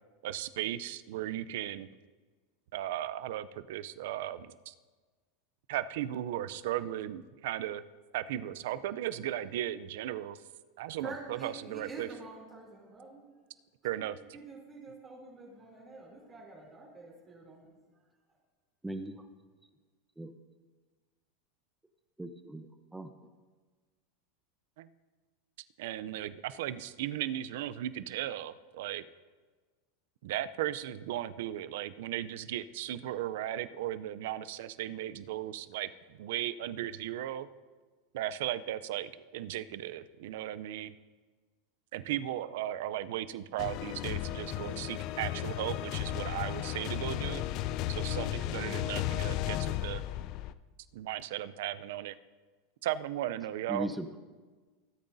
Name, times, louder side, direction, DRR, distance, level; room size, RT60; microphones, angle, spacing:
voice 1, 0.2-1.9 2.7-4.7 5.7-7.8 8.1-10.4 10.8-12.1 13.8-14.2 24.8-24.9 25.8-29.0 30.2-37.5 38.1-40.9 41.9-47.4 47.9-50.0 50.9-52.2 52.8-53.9, right 12 dB, 75° right, 14 dB, 0.5 m, -36 dB
voice 2, 11.0-13.2 14.0-17.8, right 3 dB, 25° right, -5 dB, 3.0 m, -47 dB
voice 3, 22.2-23.1 53.7-54.2, right 1 dB, 5° right, 8 dB, 0.7 m, -38 dB
sound 1, 43.6-50.5, left 13 dB, 50° left, 0.4 m, -34 dB
19.0 x 8.8 x 2.7 m, 1.4 s
supercardioid pair, 130°, 0 cm